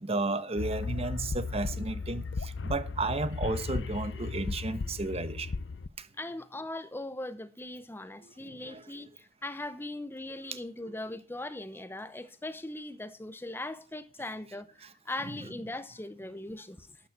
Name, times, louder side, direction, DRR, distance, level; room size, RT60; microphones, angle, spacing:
voice 1, 0.0-5.5 6.0-6.1 8.2-8.8 10.8-10.9, right 2 dB, 35° right, 1.0 m, -33 dB
sound 1, 0.6-5.9, left 4 dB, 80° left, 0.6 m, -35 dB
voice 2, 6.2-16.9, left 2 dB, 15° left, 0.8 m, -40 dB
12.5 x 9.9 x 6.0 m
head